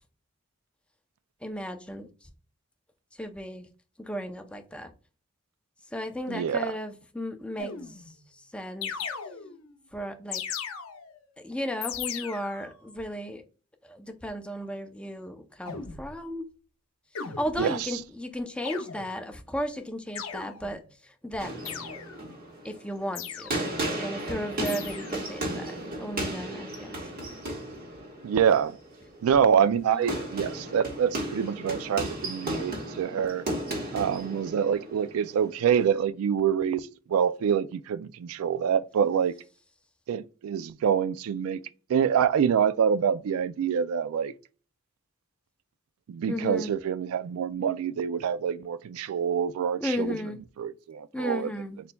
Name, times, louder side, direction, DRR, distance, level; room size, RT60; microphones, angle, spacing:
voice 1, 1.4-2.1 3.2-3.7 4.0-4.9 5.9-7.7 8.5-8.9 9.9-10.4 11.4-13.4 13.8-16.4 17.2-20.8 21.2-21.6 22.6-23.5 24.0-27.0 29.9-30.2 46.3-46.7 49.8-50.4 51.1-51.8, equal, 5° left, 0.5 m, -35 dB
voice 2, 6.3-6.7 17.6-17.8 28.2-28.8 29.2-33.4 33.9-39.3 40.1-41.6 41.9-44.3 46.1-50.2 50.6-51.5, right 7 dB, 80° right, 0.3 m, -26 dB
sound 1, 7.6-8.2 8.8-9.7 10.3-11.2 11.8-12.7 15.7-16.1 17.2-17.9 18.7-19.3 20.2-20.9 21.7-22.3 23.2-23.8 24.7-25.3, left 7 dB, 75° left, 0.7 m, -38 dB
sound 2, 21.4-36.0, right 1 dB, 45° right, 1.4 m, -35 dB
4.3 x 4.0 x 2.2 m
head